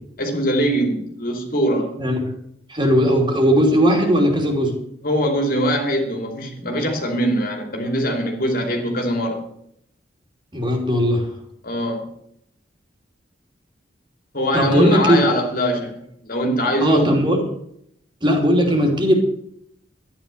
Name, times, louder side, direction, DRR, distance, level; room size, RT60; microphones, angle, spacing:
voice 1, 0.2-2.0 5.0-9.4 11.6-12.1 14.3-16.0 16.2-17.1 18.7-18.8, equal, 55° left, 3 dB, 2.8 m, -22 dB
voice 2, 2.7-4.7 10.5-11.3 14.5-15.2 16.8-17.4 18.2-19.1, equal, 25° right, 2 dB, 3.0 m, -17 dB
12.5 x 10.0 x 6.8 m, 0.71 s
head